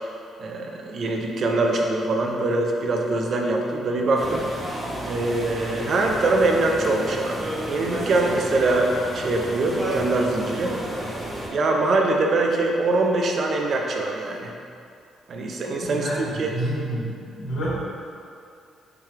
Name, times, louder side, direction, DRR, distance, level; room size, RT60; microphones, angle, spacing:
voice 1, 0.4-4.5 5.0-10.7 11.5-14.5 15.3-16.5, right 2 dB, 55° right, 1 dB, 0.4 m, -23 dB
sound 1, 4.1-11.5, right 1 dB, 15° right, 0.7 m, -32 dB
voice 2, 15.8-17.8, right 1 dB, 70° left, -8 dB, 1.2 m, -29 dB
4.6 x 2.3 x 3.2 m, 2.4 s
cardioid pair, 90°, 0 cm